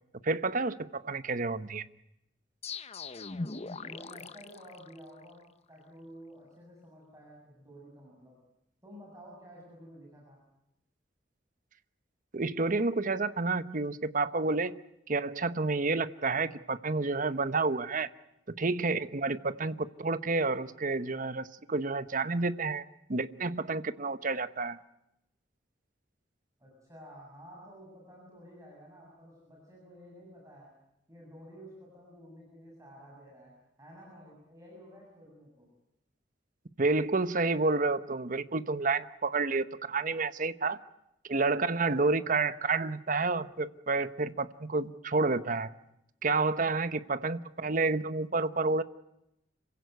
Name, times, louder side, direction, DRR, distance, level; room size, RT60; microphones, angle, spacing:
voice 1, 0.2-1.9 12.3-14.7 15.1-18.1 18.5-22.8 23.1-24.8 36.8-40.8 41.3-45.7 46.2-48.8, right 3 dB, 45° right, 13 dB, 0.9 m, -30 dB
sound 1, 2.6-5.4, left 4 dB, 35° left, 0.8 m, -40 dB
voice 2, 3.8-8.4 8.8-10.4 26.6-30.7 31.1-35.7, equal, 20° right, -2 dB, 7.2 m, -52 dB
26.5 x 16.5 x 9.3 m, 0.85 s
head